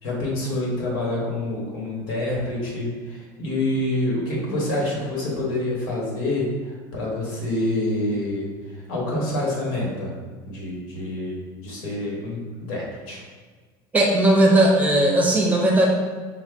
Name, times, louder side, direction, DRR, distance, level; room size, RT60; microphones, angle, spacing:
voice 1, 0.0-10.1 10.5-13.2, left 1 dB, 85° left, -3 dB, 1.5 m, -27 dB
voice 2, 13.9-15.9, right 1 dB, 15° right, -2 dB, 0.6 m, -17 dB
5.5 x 2.2 x 3.4 m, 1.5 s
cardioid pair, 145°, 11 cm